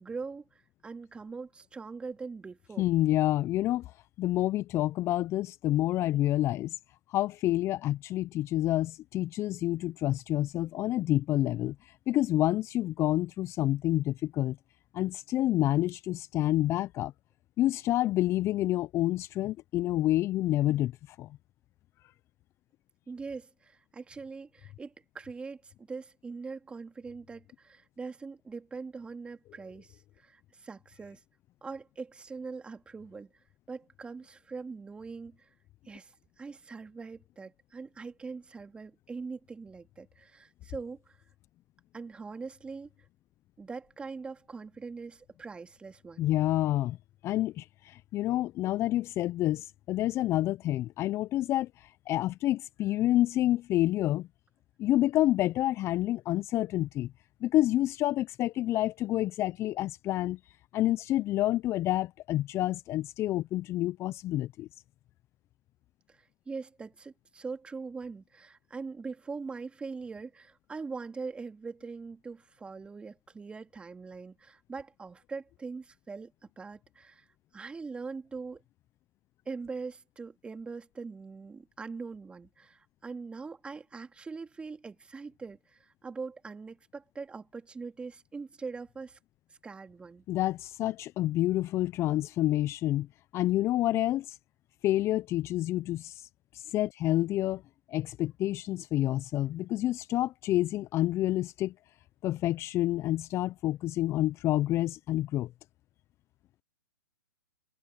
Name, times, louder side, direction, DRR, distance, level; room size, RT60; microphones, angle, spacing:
voice 1, 0.0-2.9 23.1-31.2 31.6-33.3 33.7-35.5 35.9-41.2 41.9-42.9 43.6-46.3 66.1-77.3 77.5-78.6 79.5-89.2 89.6-90.2, right 4 dB, 10° right, 2.5 m, -42 dB
voice 2, 2.8-6.8 7.1-14.6 14.9-17.1 17.6-21.3 46.2-47.0 47.2-54.3 54.8-57.1 57.4-60.4 60.7-64.7 90.3-93.1 93.3-94.4 94.8-96.3 96.5-97.6 97.9-101.7 102.2-105.5, left 14 dB, 25° left, 0.9 m, -28 dB
hypercardioid pair, 125°, 11 cm